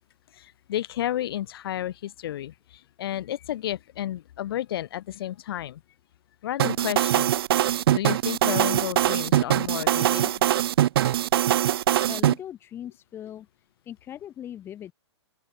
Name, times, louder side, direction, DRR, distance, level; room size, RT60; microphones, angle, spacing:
voice 1, 0.3-5.8 6.4-7.3 7.7-10.3, left 12 dB, 50° left, 0.8 m, -32 dB
sound 1, 6.6-12.3, right 12 dB, 55° right, 0.5 m, -22 dB
voice 2, 12.1-13.5 13.9-14.9, left 10 dB, 15° left, 2.4 m, -39 dB
open air
hypercardioid pair, 165°, 15 cm